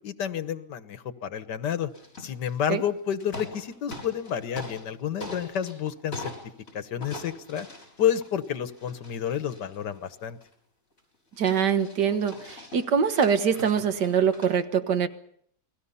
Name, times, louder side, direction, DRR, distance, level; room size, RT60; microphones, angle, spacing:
voice 1, 0.0-1.9 2.2-6.3 6.7-7.7 8.0-10.4, left 9 dB, 85° left, 1.8 m, -30 dB
sound 1, 1.9-2.9 3.2-4.9 5.2-6.7 7.0-10.5 11.0-11.1 11.3-14.5, left 1 dB, 50° left, 7.0 m, -42 dB
voice 2, 11.4-15.1, right 7 dB, 85° right, 1.9 m, -24 dB
29.0 x 20.5 x 5.6 m
omnidirectional pair, 1.8 m